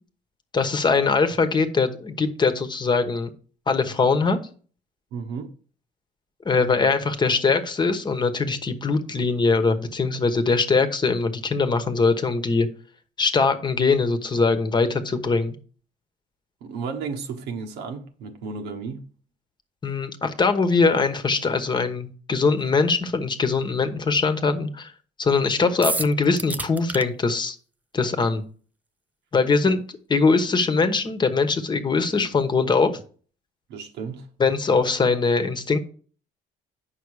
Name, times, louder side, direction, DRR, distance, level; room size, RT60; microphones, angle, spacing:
voice 1, 0.5-3.3 3.7-4.4 6.4-12.7 13.2-15.5 19.8-24.9 25.2-27.6 27.9-28.4 29.3-29.8 30.1-32.9 34.4-35.8, left 4 dB, 25° left, 1.1 m, -22 dB
voice 2, 5.1-5.5 16.6-19.0 29.5-29.8 33.7-34.3, right 5 dB, 85° right, 1.2 m, -33 dB
sound 1, 25.8-27.0, right 2 dB, 10° right, 0.4 m, -28 dB
8.4 x 5.8 x 4.8 m
cardioid pair, 110°, 17 cm